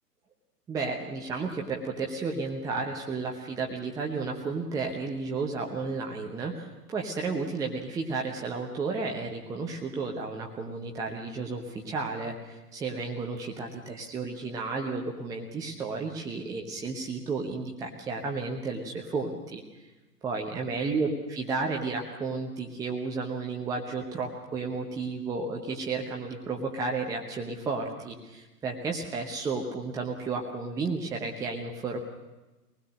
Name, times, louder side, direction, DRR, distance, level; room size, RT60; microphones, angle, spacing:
voice 1, 0.7-19.6 20.2-32.0, right 4 dB, 5° right, 1 dB, 0.9 m, -32 dB
25.0 x 19.5 x 6.5 m, 1.1 s
figure-of-eight pair, 125°, 48 cm